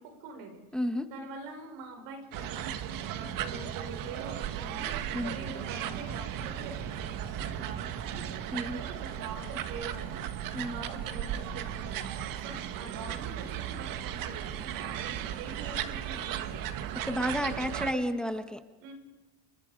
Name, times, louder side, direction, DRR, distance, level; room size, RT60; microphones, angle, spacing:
voice 1, 0.0-0.6 1.1-12.1 12.4-16.6 17.5-18.1 18.8-18.9, right 4 dB, 80° right, 5 dB, 6.1 m, -45 dB
voice 2, 0.7-1.1 5.1-5.3 8.5-8.8 10.5-10.8 17.0-18.6, equal, ahead, 8 dB, 1.2 m, -31 dB
sound 1, 2.3-17.9, right 10 dB, 60° right, 1.7 m, -36 dB
30.0 x 24.5 x 5.2 m, 1.1 s
cardioid pair, 125°, 37 cm